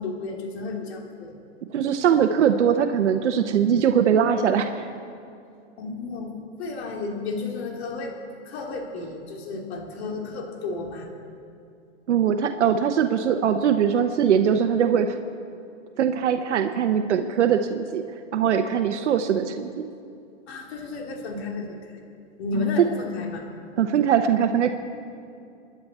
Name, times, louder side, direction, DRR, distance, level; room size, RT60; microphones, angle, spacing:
voice 1, 0.0-1.4 5.8-6.3 6.6-8.1 8.4-11.1 20.5-22.0 22.4-23.4, left 3 dB, 65° left, 1 dB, 3.0 m, -32 dB
voice 2, 1.7-4.9 12.1-15.1 16.0-18.0 18.3-19.9 22.5-22.7 23.8-24.7, right 8 dB, 90° right, 7 dB, 0.9 m, -21 dB
26.0 x 10.5 x 4.2 m, 2.6 s
hypercardioid pair, 140°, 34 cm